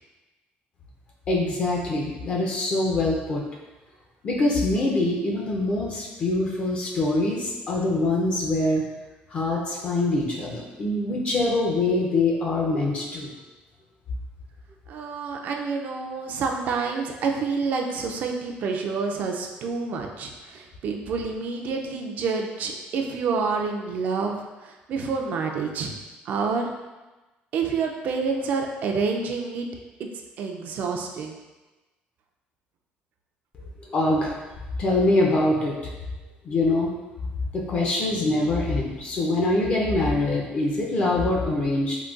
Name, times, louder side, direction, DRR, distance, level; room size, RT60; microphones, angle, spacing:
voice 1, 1.3-3.5 4.2-8.8 9.3-13.3 33.5-33.6 33.9-34.3 34.8-35.8 36.4-36.9 37.5-42.0, left 2 dB, 35° left, -2 dB, 0.5 m, -24 dB
voice 2, 14.9-25.9 26.3-26.7 27.5-29.7 30.0-30.1 30.4-31.4, right 5 dB, 50° right, 2 dB, 0.3 m, -28 dB
3.7 x 2.2 x 2.4 m, 1.1 s
cardioid pair, 155°, 4 cm